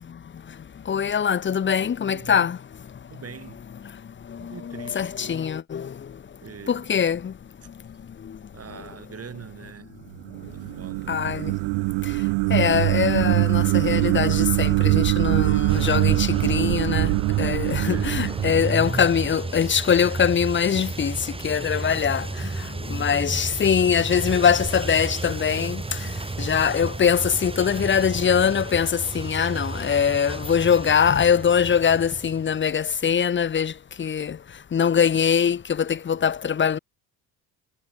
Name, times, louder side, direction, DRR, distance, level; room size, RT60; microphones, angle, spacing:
voice 1, 0.9-2.6 4.3-6.1 6.7-7.3 8.2-8.4 11.1-11.5 12.0-12.1 12.5-34.4 34.7-36.8, left 7 dB, 25° left, 0.9 m, -23 dB
voice 2, 2.1-2.5 3.1-3.6 4.4-5.4 6.4-6.9 8.5-9.9 10.5-11.1 17.8-18.1 18.5-18.6 23.1-23.5, right 7 dB, 35° right, 6.7 m, -42 dB
sound 1, 10.1-19.4, right 29 dB, 80° right, 0.5 m, -23 dB
sound 2, 15.7-32.7, right 3 dB, 15° right, 2.0 m, -32 dB
cardioid pair, 115°, 42 cm